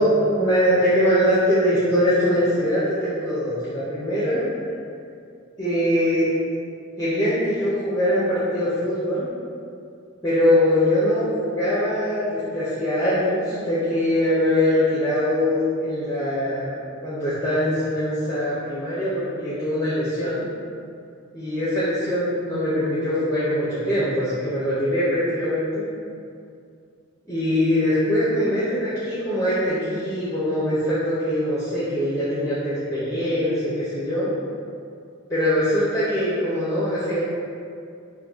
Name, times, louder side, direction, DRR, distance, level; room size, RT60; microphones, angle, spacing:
voice 1, 0.0-4.5 5.6-6.3 7.0-9.3 10.2-16.7 17.0-20.5 21.3-25.9 27.3-34.3 35.3-37.2, equal, 15° left, -11 dB, 0.5 m, -22 dB
2.6 x 2.6 x 3.7 m, 2.4 s
head